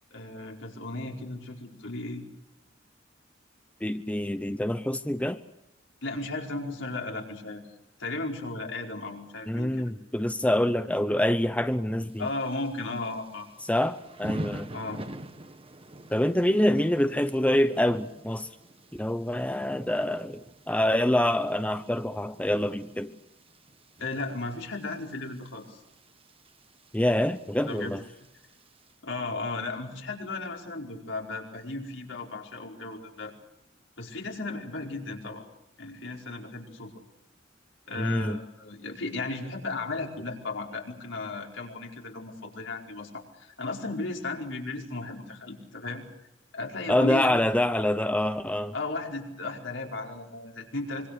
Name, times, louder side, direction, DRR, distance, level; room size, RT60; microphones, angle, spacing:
voice 1, 0.1-2.2 6.0-7.6 8.0-9.9 12.2-13.5 14.7-15.0 24.0-25.8 27.7-27.9 29.0-33.3 34.0-35.4 35.8-36.9 37.9-46.0 46.5-47.6 48.7-51.1, left 2 dB, 75° left, 4.9 m, -35 dB
voice 2, 3.8-5.4 9.5-12.3 13.6-14.8 16.1-18.5 18.9-23.1 26.9-28.0 38.0-38.4 46.9-48.7, left 1 dB, 5° left, 0.8 m, -26 dB
Thunder / Rain, 12.1-28.9, right 1 dB, 30° right, 1.4 m, -46 dB
25.5 x 24.5 x 6.7 m
head